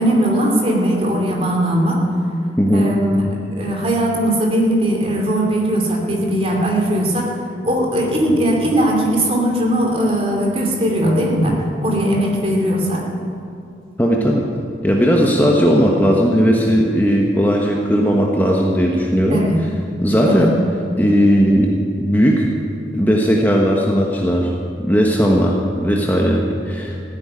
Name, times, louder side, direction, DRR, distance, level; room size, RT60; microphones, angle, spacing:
voice 1, 0.0-2.0 2.7-3.2 3.6-7.3 7.6-11.5 11.8-13.0 19.3-19.6 20.3-20.5, right 1 dB, 35° right, 0 dB, 2.7 m, -18 dB
voice 2, 2.6-2.9 14.0-14.4 14.8-19.4 20.0-20.6 21.0-21.7 22.0-22.5 22.9-24.5 24.9-26.9, equal, 10° left, -1 dB, 1.1 m, -16 dB
15.0 x 8.9 x 9.9 m, 2.4 s
head